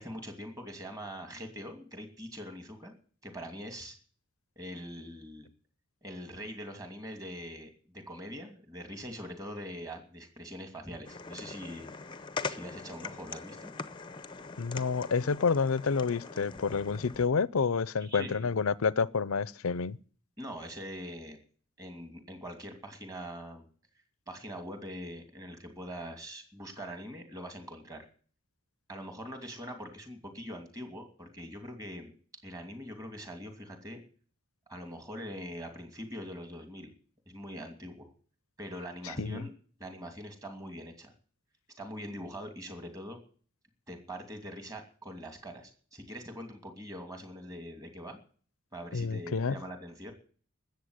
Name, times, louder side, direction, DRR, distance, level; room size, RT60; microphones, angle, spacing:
voice 1, 0.0-2.9 3.2-3.9 4.6-5.5 6.0-11.9 12.5-13.7 18.0-18.5 20.4-21.4 21.8-23.7 24.3-28.0 28.9-32.1 32.4-34.0 34.7-36.9 37.3-38.1 38.6-39.5 39.8-41.1 41.8-43.2 43.9-48.2 48.7-50.1, equal, 15° right, 2.7 m, -43 dB
sound 1, 11.0-17.3, left 4 dB, 20° left, 0.7 m, -42 dB
voice 2, 14.6-20.0 39.2-39.4 48.9-49.6, left 5 dB, 80° left, 0.6 m, -29 dB
13.0 x 8.1 x 9.6 m
head